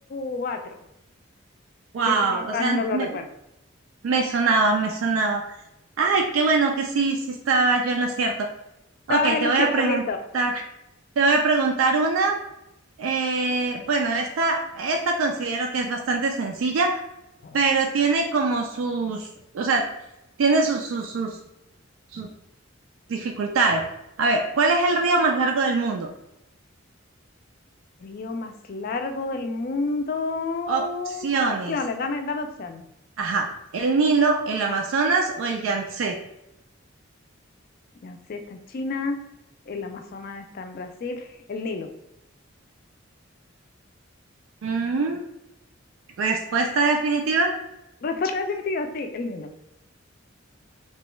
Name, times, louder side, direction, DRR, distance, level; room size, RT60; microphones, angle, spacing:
voice 1, 0.1-0.8 2.1-3.3 9.1-10.2 17.4-17.6 28.0-32.8 38.0-39.2 39.7-41.9 48.0-49.5, left 3 dB, 45° left, 6 dB, 0.3 m, -29 dB
voice 2, 1.9-3.2 4.0-5.4 6.0-8.5 9.1-10.0 10.3-10.6 11.2-12.4 13.0-17.0 17.5-19.3 19.5-19.9 20.4-21.4 22.1-22.3 23.1-23.9 24.2-26.1 30.7-31.8 33.2-33.5 33.7-36.2 44.6-45.2 46.2-47.5, right 3 dB, 80° right, 2 dB, 0.4 m, -23 dB
2.9 x 2.2 x 3.0 m, 0.86 s
head